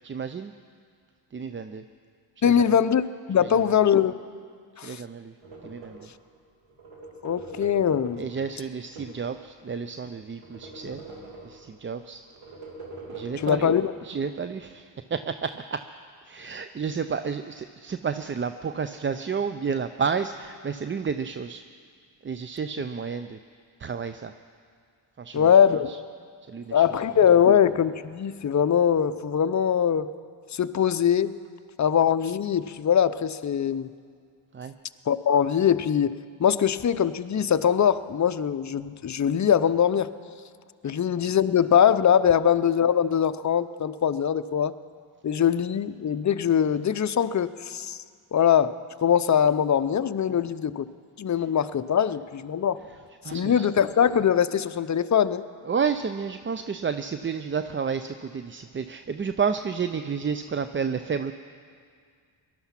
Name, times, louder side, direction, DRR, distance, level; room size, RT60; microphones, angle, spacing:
voice 1, 0.0-0.5 1.3-1.8 2.4-2.7 3.4-3.7 4.8-5.3 5.6-6.1 8.2-11.0 11.4-12.2 13.1-13.7 14.0-15.8 16.2-21.6 22.2-23.4 23.8-24.3 25.2-26.0 26.5-26.8 34.5-34.7 50.3-50.4 53.2-53.7 55.7-61.4, right 6 dB, 25° right, 10 dB, 0.5 m, -31 dB
voice 2, 2.4-4.1 4.8-5.0 7.2-8.2 13.4-13.9 25.3-25.9 26.7-30.1 30.5-31.4 31.8-33.9 35.1-40.1 40.8-44.7 45.2-48.0 48.3-50.9 51.2-52.8 53.3-55.4, left 8 dB, 35° left, 12 dB, 0.6 m, -22 dB
sound 1, 5.4-6.2 6.7-9.3 9.8-11.8 12.3-13.9, right 2 dB, 80° right, 2.5 m, -43 dB
18.5 x 12.0 x 5.8 m, 2.1 s
supercardioid pair, 50°, 49 cm